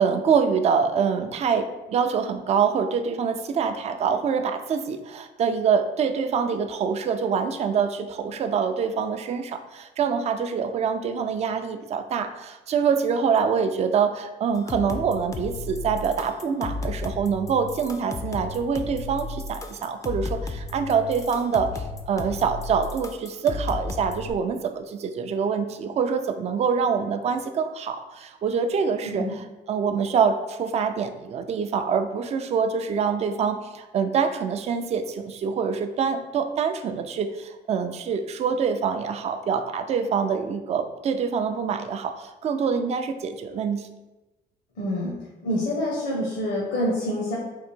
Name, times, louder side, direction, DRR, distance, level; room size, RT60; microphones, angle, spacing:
voice 1, 0.0-29.2 29.7-43.9, right 6 dB, 40° right, 7 dB, 0.4 m, -25 dB
sound 1, 14.5-24.3, left 3 dB, 20° left, 0.4 m, -34 dB
voice 2, 44.8-45.1 45.4-47.4, left 1 dB, 85° left, -6 dB, 1.2 m, -26 dB
3.8 x 2.6 x 4.4 m, 1.1 s
cardioid pair, 110°, 17 cm